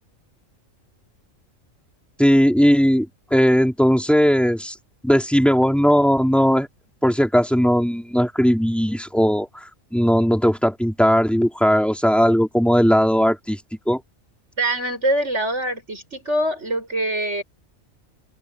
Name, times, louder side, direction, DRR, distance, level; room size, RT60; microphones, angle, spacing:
voice 1, 2.2-4.7 5.0-6.7 7.0-9.5 9.9-13.6 13.9-14.0, equal, ahead, 4.0 m, -18 dB
voice 2, 14.6-17.4, right 1 dB, 55° right, 7.7 m, -24 dB
omnidirectional pair, 1.4 m